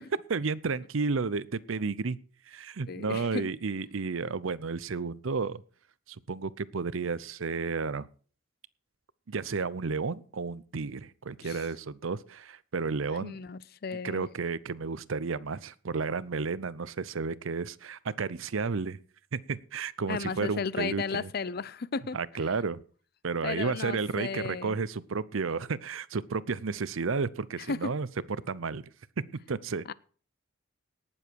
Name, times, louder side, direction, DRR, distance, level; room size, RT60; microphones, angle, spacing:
voice 1, 0.3-2.2 2.5-5.6 6.1-8.1 9.3-13.4 13.9-19.0 19.3-21.3 22.1-22.8 23.2-28.1 28.5-28.8 29.5-29.9, right 4 dB, 75° right, 0.6 m, -32 dB
voice 2, 2.9-3.5 11.4-11.6 13.2-14.3 20.1-22.2 23.4-24.7 27.7-27.9 29.9-30.0, left 5 dB, 50° left, 0.5 m, -34 dB
18.5 x 7.1 x 4.6 m
head